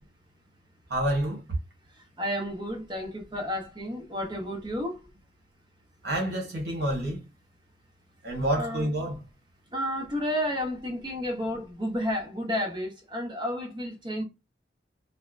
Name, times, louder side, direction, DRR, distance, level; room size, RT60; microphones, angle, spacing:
voice 1, 0.9-1.4 6.0-7.2 8.2-9.2, right 1 dB, 65° right, 1.2 m, -28 dB
voice 2, 2.2-5.0 8.6-8.9 9.7-14.2, equal, 25° right, 0.8 m, -31 dB
2.7 x 2.1 x 2.3 m
head